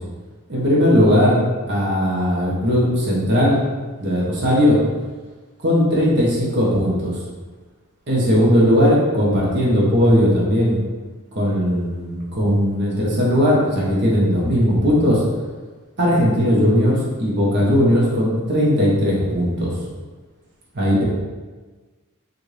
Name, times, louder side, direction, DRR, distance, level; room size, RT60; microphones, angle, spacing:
voice 1, 0.5-1.4 1.7-3.6 4.0-4.8 5.6-7.2 8.1-10.8 11.3-15.2 16.0-19.7 20.7-21.0, equal, 50° right, -5 dB, 1.1 m, -18 dB
4.3 x 2.5 x 3.3 m, 1.3 s
head